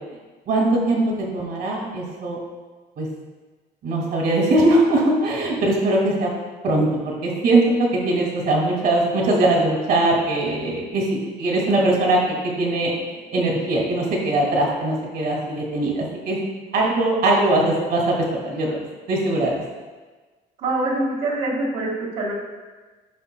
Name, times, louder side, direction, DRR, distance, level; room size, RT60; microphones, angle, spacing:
voice 1, 0.5-1.0 1.3-2.4 3.0-3.1 3.8-6.3 6.6-16.4 16.7-19.6, right 2 dB, 65° right, -2 dB, 2.1 m, -21 dB
voice 2, 20.6-22.3, right 2 dB, 85° right, -5 dB, 1.9 m, -24 dB
15.0 x 5.7 x 2.2 m, 1.3 s
cardioid pair, 110°, 17 cm